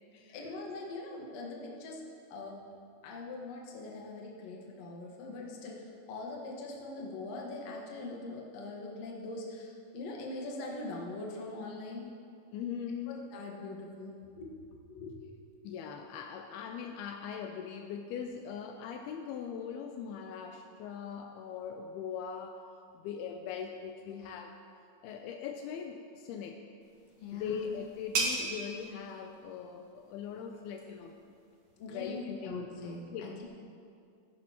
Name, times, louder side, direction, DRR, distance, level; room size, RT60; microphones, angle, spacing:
voice 1, 0.3-2.0 2.3-2.6 3.0-12.1 13.1-14.5 14.8-15.1 27.2-27.7 31.8-33.5, left 2 dB, 55° left, -2 dB, 2.1 m, -42 dB
voice 2, 12.5-13.2 15.6-22.6 22.9-24.6 25.0-26.7 27.3-31.2 31.9-32.5 33.1-33.5, left 7 dB, 80° left, 4 dB, 2.4 m, -40 dB
sound 1, 26.8-32.2, right 3 dB, 65° right, 1.5 m, -39 dB
17.5 x 10.5 x 2.9 m, 2.4 s
omnidirectional pair, 4.6 m